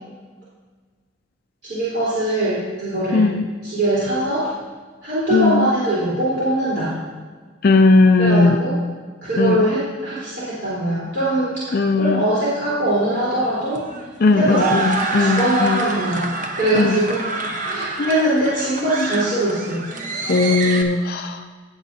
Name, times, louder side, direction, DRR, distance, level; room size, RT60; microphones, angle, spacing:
voice 1, 1.6-3.3 3.6-4.5 5.0-6.9 8.2-8.7 9.2-13.8 14.3-14.8 15.2-17.3 17.7-19.8, right 1 dB, 55° right, -10 dB, 3.6 m, -22 dB
voice 2, 3.1-3.4 5.3-5.7 7.6-8.6 9.4-9.6 11.7-12.2 14.2-15.8 16.7-17.0 18.0-18.3 20.3-21.4, left 3 dB, 45° left, 6 dB, 0.4 m, -17 dB
sound 1, 12.9-20.8, right 3 dB, 40° right, 0.9 m, -27 dB
17.5 x 8.0 x 2.7 m, 1.4 s
head